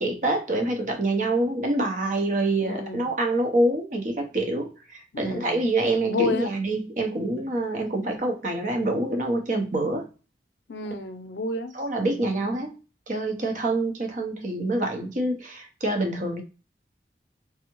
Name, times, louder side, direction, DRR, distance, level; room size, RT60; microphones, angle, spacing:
voice 1, 0.0-10.1 11.7-12.7 13.1-16.4, right 2 dB, 45° right, 0.7 m, -26 dB
voice 2, 2.6-3.1 5.1-5.6 6.0-6.5 10.7-11.7, left 3 dB, 80° left, 0.5 m, -30 dB
3.4 x 2.0 x 3.0 m
head